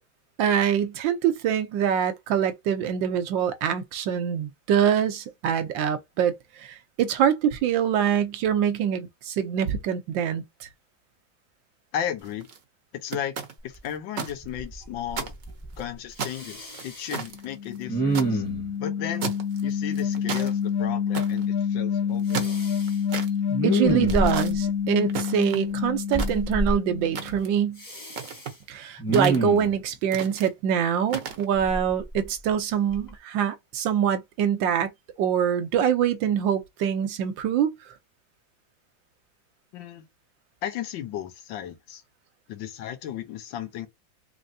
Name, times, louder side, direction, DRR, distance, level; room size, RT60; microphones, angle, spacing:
voice 1, 0.4-6.3 6.6-10.7 23.6-27.8 28.7-34.9 35.2-37.8, right 8 dB, 80° right, 1.4 m, -24 dB
voice 2, 11.9-12.5 12.9-13.4 13.6-15.3 15.8-18.4 18.8-22.6 39.7-40.0 40.6-42.0 42.5-43.9, left 10 dB, 80° left, 1.6 m, -35 dB
sound 1, 12.2-12.6 13.1-14.3 14.7-14.8 15.1-15.8 16.2-18.3 19.2-19.6 19.9-20.5 21.1-21.5 22.1-23.3 24.1-24.5 25.1-25.7 26.1-26.7 27.2-27.6 28.1-28.6 29.1-29.7 30.1-30.5 31.1-31.5, right 6 dB, 55° right, 1.0 m, -34 dB
Respiratory sounds, 13.8-13.9 14.3-14.8 15.1-15.8 16.2-17.2 17.9-18.7 22.3-22.9 23.5-24.6 26.1-26.7 27.8-28.5 29.0-29.8 31.6-32.5 32.9-33.1, right 1 dB, 15° left, 0.8 m, -28 dB
sound 2, 17.3-27.4, left 7 dB, 60° left, 1.0 m, -28 dB
3.9 x 3.1 x 2.7 m
omnidirectional pair, 2.1 m